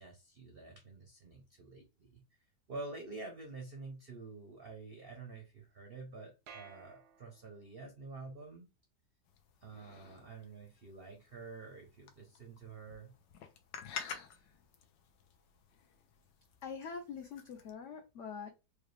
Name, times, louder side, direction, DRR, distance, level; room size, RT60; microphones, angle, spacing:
voice 1, 0.0-2.2 2.7-8.7 9.6-13.1, right 3 dB, 55° right, 0.6 m, -48 dB
sound 1, 6.5-7.8, right 6 dB, 85° right, 1.4 m, -55 dB
sound 2, 9.2-17.7, left 7 dB, 85° left, 1.4 m, -51 dB
voice 2, 16.6-18.5, left 6 dB, 65° left, 0.7 m, -44 dB
4.7 x 2.3 x 3.1 m
omnidirectional pair, 1.9 m